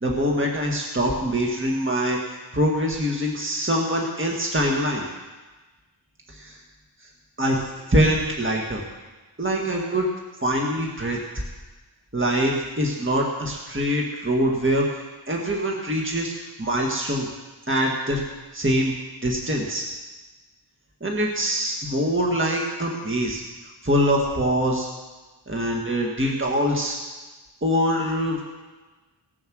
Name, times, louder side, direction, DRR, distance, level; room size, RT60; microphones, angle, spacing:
voice 1, 0.0-5.1 6.3-6.6 7.4-8.8 9.4-10.1 10.4-11.2 12.1-16.3 16.6-17.3 17.7-18.2 18.5-18.9 19.2-19.9 21.0-23.4 23.8-24.9 25.5-27.0 27.6-28.4, equal, 25° right, -1 dB, 1.8 m, -24 dB
18.5 x 7.4 x 6.3 m, 1.2 s
wide cardioid pair, 40°, 47 cm